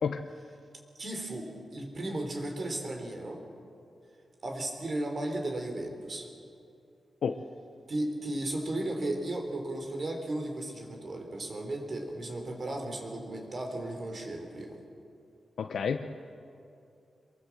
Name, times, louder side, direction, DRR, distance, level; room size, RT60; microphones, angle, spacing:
voice 1, 1.0-3.4 4.4-6.3 7.9-14.8, right 1 dB, 45° right, 3 dB, 3.8 m, -35 dB
voice 2, 15.6-16.2, left 6 dB, 75° left, 6 dB, 0.8 m, -30 dB
24.5 x 22.5 x 7.4 m, 2.6 s
wide cardioid pair, 115°, 0 cm